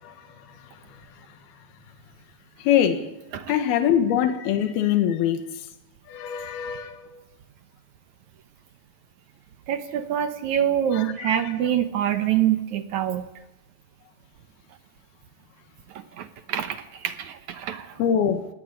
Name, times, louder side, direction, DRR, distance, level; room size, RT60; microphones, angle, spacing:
voice 1, 2.6-3.1 3.5-5.4 6.1-7.2 10.9-11.5 18.0-18.5, left 9 dB, 85° left, 3.5 m, -23 dB
voice 2, 9.7-13.3 15.9-18.0, right 10 dB, 65° right, 2.1 m, -26 dB
18.5 x 17.5 x 9.8 m
omnidirectional pair, 4.3 m